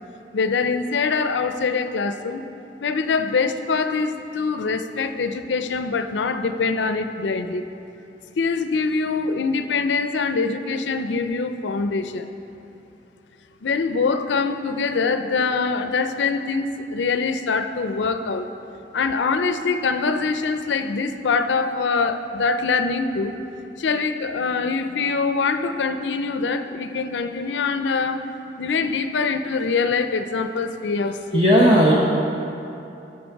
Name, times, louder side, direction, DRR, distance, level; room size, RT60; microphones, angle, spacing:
voice 1, 0.3-2.4 2.8-7.6 8.4-12.3 13.6-18.5 18.9-23.4 23.8-28.2 28.6-31.4, left 4 dB, 90° left, 9 dB, 0.5 m, -24 dB
voice 2, 31.3-31.9, equal, 30° right, -4 dB, 0.8 m, -14 dB
11.5 x 6.5 x 4.6 m, 2.8 s
head